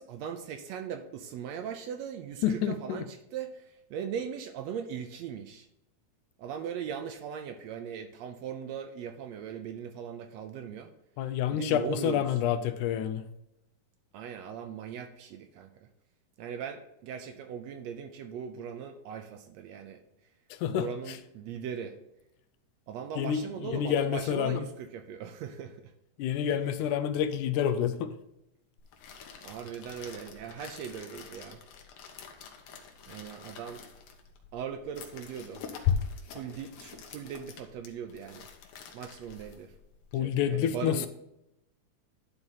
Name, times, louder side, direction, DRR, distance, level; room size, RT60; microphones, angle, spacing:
voice 1, 0.0-5.7 6.4-10.9 11.5-12.3 14.1-15.9 16.4-20.0 20.7-22.0 22.9-25.9 26.5-26.6 29.4-31.6 33.1-33.8 34.5-35.6 36.3-38.5 38.9-39.7 40.2-41.1, right 7 dB, 75° right, 7 dB, 1.7 m, -39 dB
voice 2, 2.4-3.0 11.2-13.3 20.5-21.2 23.2-24.7 26.2-28.2 40.1-41.1, left 9 dB, 90° left, 10 dB, 2.2 m, -29 dB
sound 1, 28.8-40.1, left 6 dB, 65° left, 2.0 m, -49 dB
11.0 x 4.0 x 5.7 m, 0.85 s
omnidirectional pair, 3.5 m